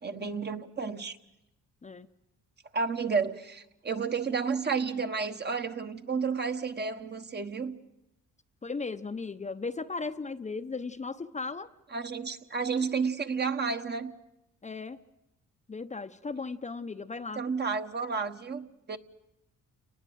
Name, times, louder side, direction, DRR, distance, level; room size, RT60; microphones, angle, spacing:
voice 1, 0.0-1.2 2.7-7.8 11.9-14.1 17.4-19.0, right 5 dB, 35° right, 1.4 m, -31 dB
voice 2, 8.6-11.7 14.6-15.0 15.7-17.5, left 4 dB, 25° left, 0.8 m, -36 dB
29.5 x 19.5 x 7.9 m
cardioid pair, 90°, 30 cm